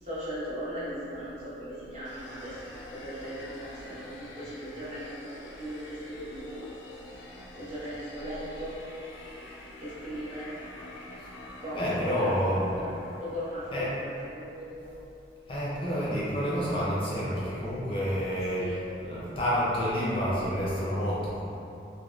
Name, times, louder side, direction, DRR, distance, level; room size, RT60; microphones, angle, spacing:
voice 1, 0.0-2.6 2.9-6.6 7.5-8.8 9.8-10.5 11.6-12.9 13.2-14.9 18.6-18.8, equal, 35° right, -9 dB, 0.6 m, -38 dB
sound 1, 2.0-14.3, left 1 dB, 85° left, 0.4 m, -47 dB
voice 2, 11.7-12.7 13.7-13.9 15.5-21.4, equal, 30° left, -8 dB, 0.5 m, -29 dB
3.2 x 2.1 x 2.3 m, 2.8 s
head